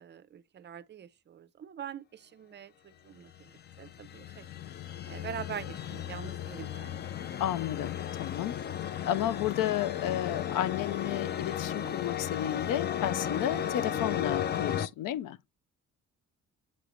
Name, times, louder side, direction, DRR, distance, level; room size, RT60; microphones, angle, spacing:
voice 1, 0.0-3.5 3.8-4.5 5.1-7.0 13.5-13.7, right 8 dB, 35° right, 0.5 m, -44 dB
sound 1, 3.3-14.9, left 10 dB, 35° left, 0.4 m, -35 dB
voice 2, 7.4-8.6 9.1-15.4, left 12 dB, 85° left, 0.5 m, -32 dB
7.5 x 4.9 x 3.0 m
cardioid pair, 160°, 31 cm